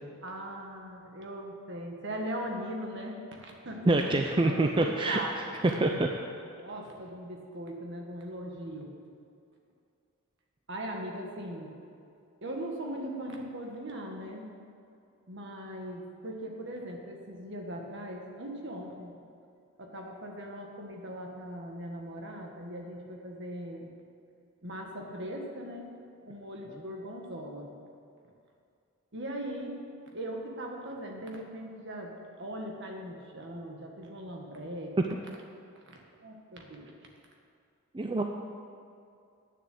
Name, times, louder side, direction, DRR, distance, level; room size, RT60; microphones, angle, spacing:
voice 1, 0.2-5.6 6.6-8.9 10.7-11.7 12.4-14.5 15.3-19.1 19.8-23.9 24.6-25.9 26.3-27.7 29.1-29.8 30.1-35.2 35.8-35.9 36.2-36.9, right 1 dB, 55° right, 1 dB, 1.6 m, -40 dB
voice 2, 3.9-5.2 5.8-6.1 37.9-38.2, right 2 dB, 25° right, 3 dB, 0.4 m, -25 dB
9.4 x 7.2 x 7.8 m, 2.5 s
head